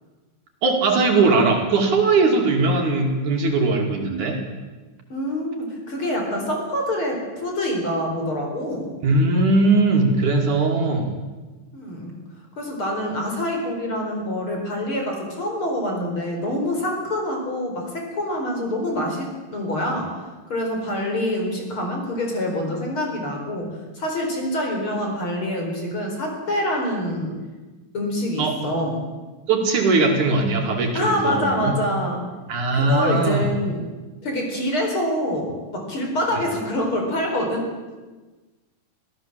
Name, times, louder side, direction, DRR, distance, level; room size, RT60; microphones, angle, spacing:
voice 1, 0.6-4.4 9.0-11.1 28.4-28.6 29.5-31.8 32.5-33.5, right 3 dB, 65° right, 2 dB, 4.0 m, -19 dB
voice 2, 5.1-8.9 11.7-12.2 12.6-20.2 20.5-27.4 27.9-29.0 30.9-32.2 32.7-33.8 34.2-37.7, left 1 dB, 40° left, 2 dB, 5.2 m, -26 dB
26.0 x 16.5 x 7.6 m, 1.3 s
omnidirectional pair, 3.8 m